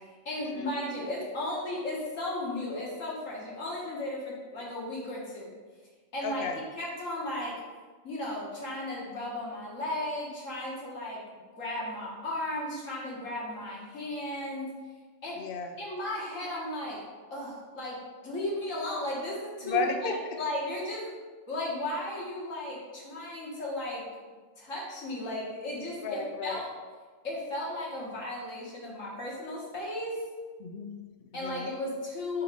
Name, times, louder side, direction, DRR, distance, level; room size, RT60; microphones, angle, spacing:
voice 1, 0.3-5.5 6.1-6.4 6.8-7.6 8.0-11.2 11.6-14.7 15.2-15.4 15.8-17.0 17.3-21.1 21.5-24.0 24.6-26.8 27.2-30.2 31.3-32.4, left 1 dB, 85° left, -4 dB, 1.8 m, -35 dB
voice 2, 6.2-6.6 15.4-15.7 19.6-20.1 26.0-26.6 30.6-31.8, left 4 dB, 55° left, 4 dB, 0.7 m, -34 dB
4.7 x 4.0 x 4.9 m, 1.4 s
omnidirectional pair, 1.3 m